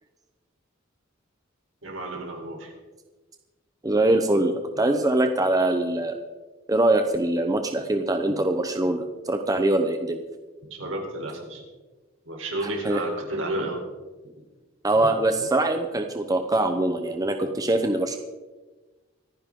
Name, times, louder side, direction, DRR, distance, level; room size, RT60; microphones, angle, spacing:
voice 1, 1.8-2.7 10.7-11.6 12.3-13.8, right 2 dB, 70° right, 1 dB, 3.9 m, -31 dB
voice 2, 3.8-6.2 6.7-10.2 12.8-13.0 14.8-18.2, right 2 dB, 20° right, 5 dB, 0.9 m, -23 dB
25.5 x 10.0 x 3.8 m, 1.3 s
head